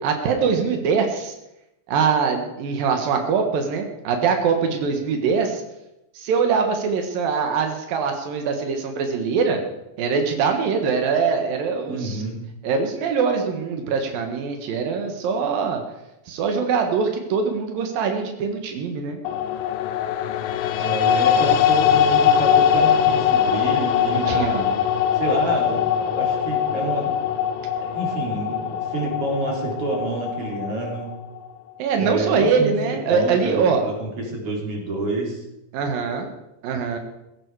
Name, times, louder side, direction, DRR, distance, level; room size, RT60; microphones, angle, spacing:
voice 1, 0.0-1.3 1.9-5.6 6.2-9.6 10.0-12.2 12.6-15.8 16.3-19.2 20.8-20.9 24.1-24.8 31.8-33.8 35.7-36.3 36.6-37.0, right 5 dB, 85° right, 5 dB, 3.2 m, -23 dB
voice 2, 11.9-12.4 20.8-24.6 25.1-27.1 27.8-31.1 31.9-35.4, right 2 dB, 40° right, -1 dB, 4.2 m, -28 dB
sound 1, 19.2-31.5, left 9 dB, 80° left, 2.4 m, -21 dB
16.0 x 15.0 x 4.7 m, 0.91 s
omnidirectional pair, 4.0 m